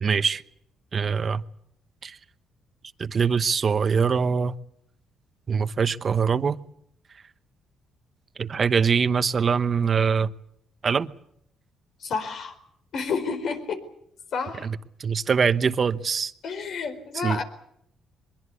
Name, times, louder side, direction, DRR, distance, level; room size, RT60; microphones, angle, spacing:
voice 1, 0.0-0.4 0.9-1.4 2.0-2.2 3.0-4.5 5.5-6.6 8.4-10.3 10.8-11.1 14.6-16.3 17.2-17.4, right 6 dB, 45° right, 1.0 m, -23 dB
voice 2, 12.0-12.5 12.9-13.8 14.3-14.7 16.4-17.4, left 5 dB, 65° left, 4.4 m, -30 dB
23.0 x 22.5 x 8.4 m
cardioid pair, 90°, 0 cm